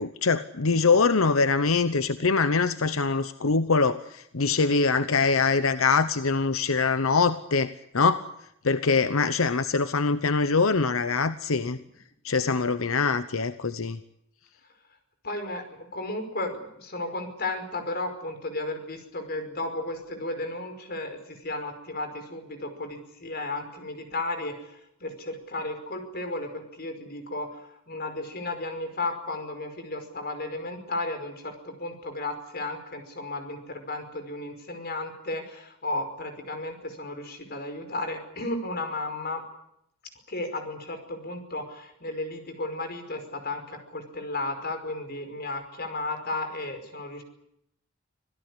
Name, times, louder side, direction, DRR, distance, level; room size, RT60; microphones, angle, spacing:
voice 1, 0.0-8.2 8.6-11.8 12.2-14.0, left 4 dB, 85° left, 12 dB, 0.9 m, -23 dB
voice 2, 15.2-39.4 40.3-47.2, left 2 dB, 50° left, 7 dB, 5.4 m, -34 dB
26.5 x 17.0 x 9.9 m, 0.77 s
head